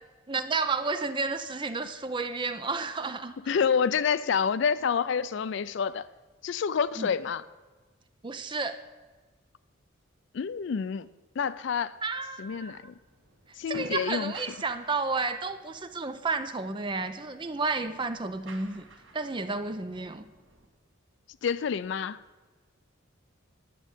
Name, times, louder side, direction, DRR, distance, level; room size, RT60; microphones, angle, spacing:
voice 1, 0.3-3.3 7.0-7.1 8.2-8.8 12.0-12.8 13.7-18.8 19.1-20.2, right 3 dB, 25° right, 10 dB, 0.5 m, -31 dB
voice 2, 3.5-6.1 6.4-7.4 10.3-11.1 11.4-12.0 12.4-12.9 13.6-14.3 21.4-22.2, left 6 dB, 60° left, 17 dB, 0.3 m, -28 dB
sound 1, 12.4-20.7, right 2 dB, 60° right, 1.5 m, -52 dB
10.0 x 7.5 x 8.1 m, 1.3 s
head